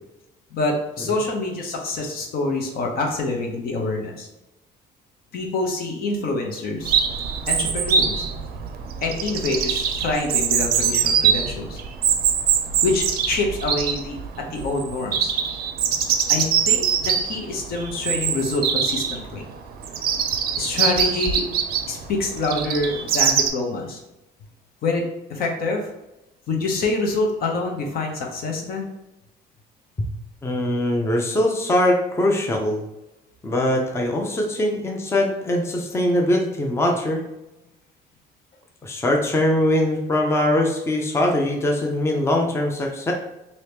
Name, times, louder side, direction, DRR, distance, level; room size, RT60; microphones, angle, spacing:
voice 1, 0.5-4.3 5.3-7.0 7.5-8.2 9.0-11.8 12.8-14.2 14.5-15.3 16.3-19.5 20.6-21.4 21.9-24.0 24.8-25.0 25.3-25.9 26.5-28.9, left 2 dB, 60° left, 2 dB, 0.8 m, -26 dB
Chirp tweet, 6.8-23.5, right 7 dB, 65° right, 0.5 m, -23 dB
voice 2, 30.4-32.8 33.4-37.2 38.8-43.1, left 1 dB, 15° left, 1 dB, 0.5 m, -22 dB
3.0 x 2.8 x 3.4 m, 0.94 s
cardioid pair, 110°, 17 cm